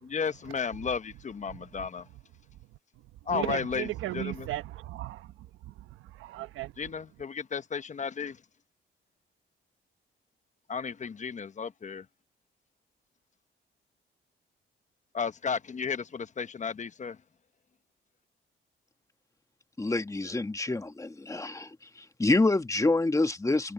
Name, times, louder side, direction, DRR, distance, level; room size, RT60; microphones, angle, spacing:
voice 1, 0.0-2.1 3.3-4.5 6.8-8.4 10.7-12.1 15.1-17.2, left 6 dB, 35° left, 1.1 m, -33 dB
voice 2, 3.3-5.3 5.6-5.7 6.1-6.7, right 15 dB, 90° right, 1.1 m, -35 dB
voice 3, 19.8-21.7 22.0-23.7, left 2 dB, 15° left, 1.4 m, -27 dB
cardioid pair, 90°, 20 cm